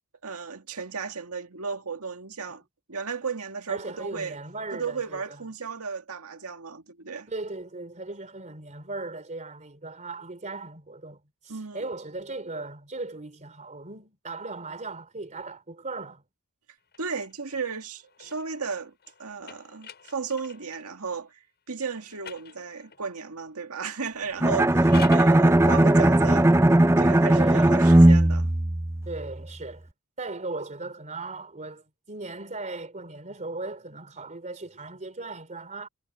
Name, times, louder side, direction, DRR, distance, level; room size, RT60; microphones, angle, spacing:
voice 1, 0.2-2.6 2.9-4.4 4.7-7.3 11.5-11.9 17.0-18.9 19.2-26.5 27.0-28.5, right 5 dB, 80° right, 2.0 m, -34 dB
voice 2, 3.7-5.4 7.3-16.2 27.3-27.8 29.0-29.9 30.2-35.9, right 3 dB, 35° right, 3.3 m, -37 dB
sound 1, 16.9-20.9 21.8-23.2 24.6-25.4, left 7 dB, 50° left, 7.9 m, -46 dB
Bowed string instrument, 24.4-29.4, right 1 dB, 10° right, 0.5 m, -18 dB
head